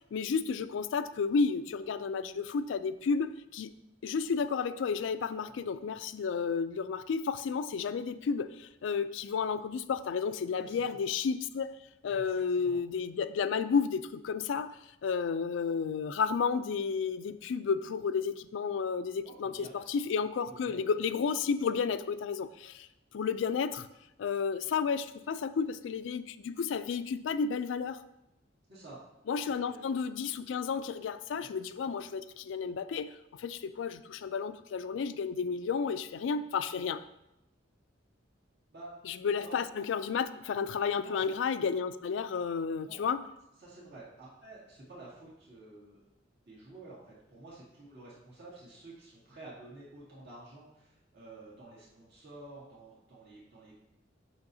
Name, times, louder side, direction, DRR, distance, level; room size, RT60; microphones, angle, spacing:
voice 1, 0.1-3.7 4.0-11.8 12.0-22.9 23.1-23.9 24.2-28.0 29.3-33.1 33.4-37.0 39.1-43.2, left 5 dB, 70° left, 13 dB, 0.3 m, -32 dB
voice 2, 10.6-11.0 12.1-12.8 19.2-19.8 20.5-20.9 28.7-29.0 29.5-29.8 31.3-31.5 36.2-36.4 38.7-38.9 39.4-39.6 40.9-41.2 42.8-43.0 43.6-46.0 46.5-53.8, right 2 dB, 60° right, -7 dB, 2.0 m, -51 dB
7.9 x 5.6 x 2.7 m, 0.87 s
head